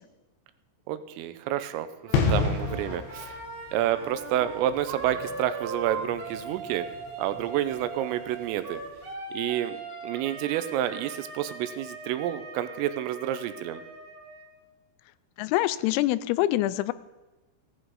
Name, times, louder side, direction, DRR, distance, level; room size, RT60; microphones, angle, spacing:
voice 1, 0.9-1.9 2.1-3.4 3.7-6.8 7.2-8.8 9.3-9.8 10.0-13.8, right 12 dB, 80° right, 11 dB, 3.3 m, -29 dB
Wind instrument woodwind instrument, 2.0-14.5, right 3 dB, 35° right, 3.8 m, -40 dB
sound 1, 2.1-8.6 8.9-9.1, left 4 dB, 65° left, 3.7 m, -32 dB
voice 2, 15.4-16.9, left 15 dB, 85° left, 16 dB, 3.3 m, -25 dB
15.5 x 11.0 x 4.7 m, 1.1 s
omnidirectional pair, 6.0 m